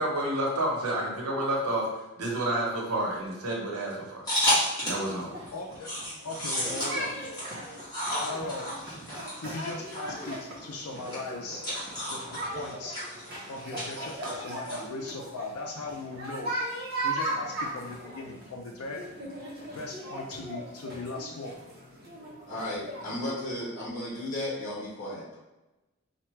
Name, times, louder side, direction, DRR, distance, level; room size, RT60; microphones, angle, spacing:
voice 1, 0.0-1.9 2.2-4.2 4.8-5.3 14.0-14.3, right 1 dB, 90° right, -2 dB, 1.1 m, -30 dB
sound 1, 4.2-5.1 5.5-14.8, left 1 dB, 20° left, 1.4 m, -33 dB
sound 2, 4.8-23.6, right 1 dB, 45° right, 0.9 m, -38 dB
voice 2, 5.5-5.9 6.2-7.2 8.2-8.7 9.4-11.6 12.1-13.0 13.5-16.6 17.0-19.0 19.7-21.6, left 2 dB, 85° left, 0 dB, 0.5 m, -38 dB
voice 3, 22.5-25.4, left 1 dB, 35° left, -6 dB, 1.3 m, -34 dB
4.5 x 2.4 x 3.1 m, 1.0 s
head